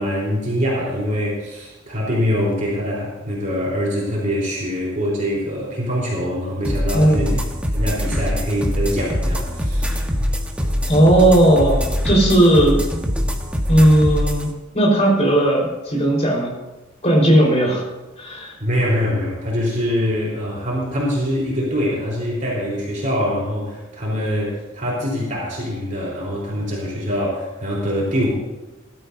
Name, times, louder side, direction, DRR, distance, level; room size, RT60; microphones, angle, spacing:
voice 1, 0.0-7.4 7.7-9.9 10.2-10.3 18.6-28.3, equal, 40° right, -5 dB, 4.1 m, -24 dB
sound 1, 6.6-14.4, equal, 5° right, 1.2 m, -23 dB
voice 2, 6.9-7.4 10.9-12.8 13.7-16.5 17.0-17.8 18.2-18.5, right 1 dB, 35° left, -2 dB, 4.6 m, -16 dB
20.0 x 13.0 x 2.7 m, 1.1 s
head